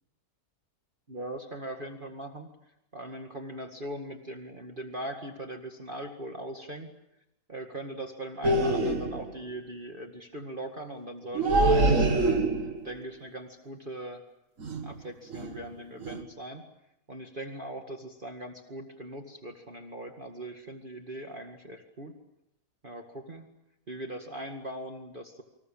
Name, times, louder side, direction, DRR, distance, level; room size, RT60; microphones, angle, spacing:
voice 1, 1.1-6.9 7.5-12.4 12.8-14.2 14.8-16.6 17.1-22.2 22.8-23.5 23.9-25.4, right 1 dB, 30° right, 4 dB, 2.2 m, -40 dB
sound 1, 8.4-9.3 11.3-12.9 14.6-15.0 15.3-15.6 16.0-16.2, right 2 dB, 50° right, 2.4 m, -25 dB
29.0 x 25.5 x 7.3 m, 0.88 s
omnidirectional pair, 1.7 m